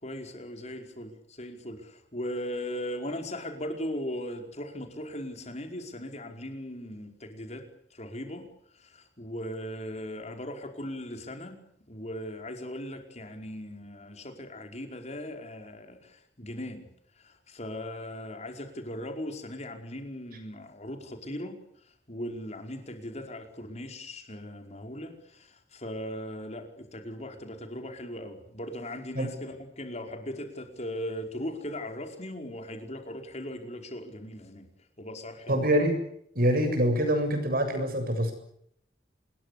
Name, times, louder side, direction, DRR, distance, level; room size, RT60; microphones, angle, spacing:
voice 1, 0.0-7.7 7.9-8.5 8.8-11.6 11.9-16.9 17.2-21.6 22.1-34.7 35.0-35.7, left 1 dB, 40° left, 5 dB, 5.0 m, -38 dB
voice 2, 35.5-36.0 36.4-38.3, equal, 55° right, 7 dB, 7.4 m, -25 dB
26.5 x 22.0 x 8.6 m, 0.69 s
head